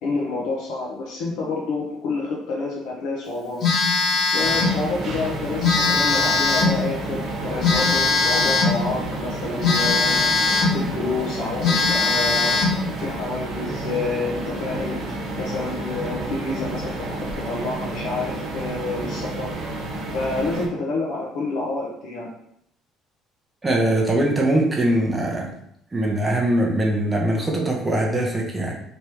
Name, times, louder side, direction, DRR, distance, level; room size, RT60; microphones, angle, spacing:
voice 1, 0.0-3.6 4.3-10.3 10.7-12.6 13.0-14.9 15.4-19.5 20.1-22.3, left 3 dB, 70° left, -3 dB, 0.7 m, -28 dB
Telephone, 3.6-4.8 5.6-6.8 7.6-8.8 9.6-10.8 11.2-11.3 11.6-12.8, left 4 dB, 45° left, 1.1 m, -20 dB
sound 1, 4.4-20.7, right 2 dB, 50° right, 0.8 m, -31 dB
voice 2, 23.6-25.5 25.9-28.7, right 1 dB, 15° right, -1 dB, 0.5 m, -21 dB
3.4 x 3.0 x 2.9 m, 0.72 s
cardioid pair, 160°, 0 cm